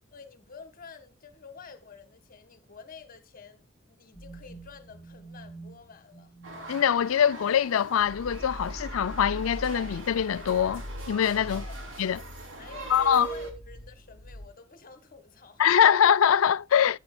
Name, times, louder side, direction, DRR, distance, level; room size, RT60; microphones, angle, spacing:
voice 1, 0.1-6.4 11.5-12.3 12.6-15.8, left 5 dB, 45° left, 1.7 m, -49 dB
sound 1, 4.1-6.8 7.2-7.6 7.9-14.5, equal, 5° left, 2.7 m, -43 dB
sound 2, 6.4-13.5, right 3 dB, 65° right, 3.4 m, -42 dB
voice 2, 6.7-11.6 12.0-12.2 12.9-13.3 15.6-17.0, left 8 dB, 90° left, 0.4 m, -23 dB
13.0 x 10.0 x 2.3 m
head